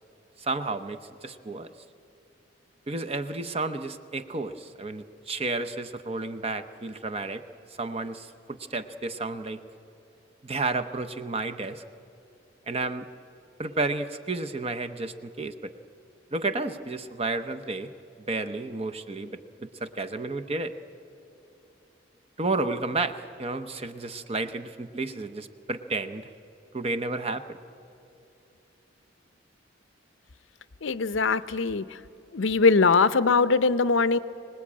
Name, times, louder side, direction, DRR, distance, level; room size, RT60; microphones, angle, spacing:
voice 1, 0.4-1.7 2.9-7.4 7.8-9.6 10.4-11.8 12.7-13.1 13.6-15.7 16.3-17.9 18.3-20.7 22.4-26.3 26.7-27.4, right 3 dB, 30° right, 8 dB, 0.8 m, -31 dB
voice 2, 30.8-31.8 32.3-34.2, left 4 dB, 80° left, 14 dB, 0.6 m, -21 dB
25.0 x 19.0 x 8.6 m, 2.8 s
head